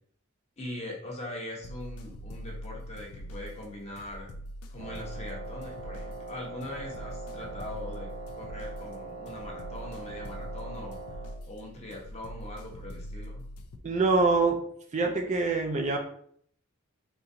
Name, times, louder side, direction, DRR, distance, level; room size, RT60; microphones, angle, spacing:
voice 1, 0.6-4.3 4.7-11.0 11.5-13.4, left 1 dB, 30° left, -2 dB, 0.9 m, -41 dB
sound 1, 1.6-13.8, equal, 85° left, 0.5 m, -43 dB
Wind instrument woodwind instrument, 4.8-11.4, right 3 dB, 55° right, 0.7 m, -42 dB
voice 2, 13.8-14.6 14.9-16.0, right 3 dB, 35° right, 3 dB, 0.4 m, -24 dB
3.9 x 2.8 x 2.7 m, 0.63 s
head